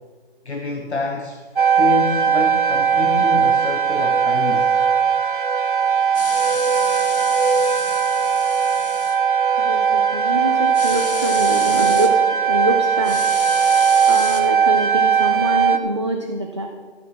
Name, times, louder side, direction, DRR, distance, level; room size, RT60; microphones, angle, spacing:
voice 1, 0.4-1.4 1.7-4.7, left 3 dB, 80° left, 2 dB, 1.4 m, -27 dB
sound 1, 1.6-15.8, right 7 dB, 50° right, 0.8 m, -18 dB
sound 2, 6.1-9.2 10.7-12.1 13.0-14.4, left 4 dB, 55° left, 1.4 m, -32 dB
voice 2, 9.6-12.2 12.5-13.2 14.1-16.7, right 1 dB, 30° right, 2 dB, 0.5 m, -25 dB
14.5 x 6.3 x 6.0 m, 1.5 s
figure-of-eight pair, 170°, 33 cm